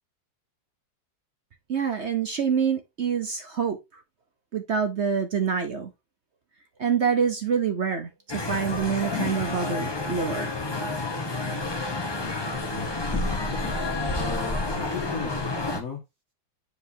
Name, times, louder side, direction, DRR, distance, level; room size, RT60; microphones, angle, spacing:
voice 1, 1.7-3.8 4.5-5.9 6.8-10.5, right 6 dB, 55° right, 0.8 m, -26 dB
sound 1, 8.3-15.8, left 2 dB, 20° left, 0.7 m, -29 dB
sound 2, 9.1-10.0 13.1-14.0, left 9 dB, 70° left, 1.5 m, -37 dB
voice 2, 13.5-15.5 15.7-16.0, left 5 dB, 50° left, 1.9 m, -37 dB
8.1 x 5.2 x 2.8 m
omnidirectional pair, 2.1 m